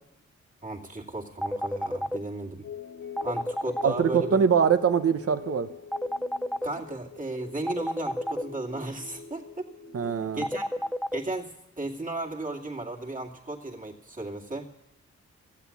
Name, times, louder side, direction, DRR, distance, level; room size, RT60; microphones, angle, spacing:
voice 1, 0.6-2.7 3.2-4.4 6.6-9.7 10.0-10.7 11.1-14.7, right 2 dB, 25° right, -1 dB, 2.4 m, -35 dB
sound 1, 1.4-2.2 3.2-3.9 5.9-6.7 7.7-8.4 10.4-11.2, equal, ahead, 0.4 m, -29 dB
sound 2, 2.6-11.0, left 7 dB, 75° left, 1.7 m, -44 dB
voice 2, 3.8-5.7 9.9-10.4, right 7 dB, 50° right, 10 dB, 1.1 m, -23 dB
15.0 x 8.3 x 8.6 m, 0.89 s
cardioid pair, 65°, 29 cm